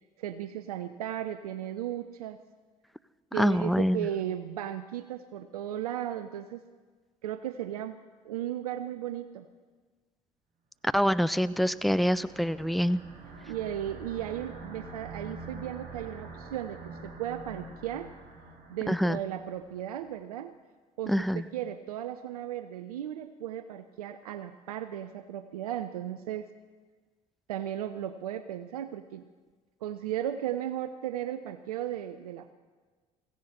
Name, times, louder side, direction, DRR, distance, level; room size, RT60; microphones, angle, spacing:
voice 1, 0.2-2.4 3.3-6.6 7.2-8.0 8.2-9.5 13.5-18.1 18.7-20.5 21.0-26.5 27.5-29.2 29.8-32.5, right 11 dB, 85° right, 11 dB, 0.5 m, -35 dB
voice 2, 3.4-4.1 10.9-13.0 18.9-19.2 21.1-21.4, equal, ahead, 15 dB, 0.5 m, -25 dB
sound 1, 11.3-19.8, right 3 dB, 50° right, 4.7 m, -46 dB
16.5 x 15.5 x 4.3 m, 1.4 s
hypercardioid pair, 55°, 19 cm